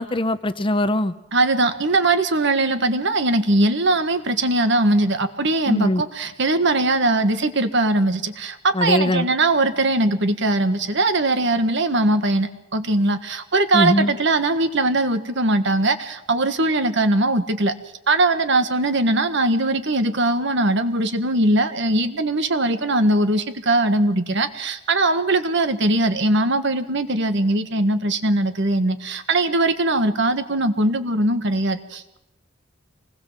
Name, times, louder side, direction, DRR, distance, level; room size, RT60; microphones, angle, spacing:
voice 1, 0.0-1.1 5.7-6.0 8.7-9.3 13.7-14.1, left 1 dB, 25° left, 13 dB, 0.8 m, -21 dB
voice 2, 1.3-17.7 18.1-32.2, right 2 dB, 60° right, 10 dB, 1.6 m, -20 dB
25.5 x 19.5 x 7.5 m, 0.90 s
head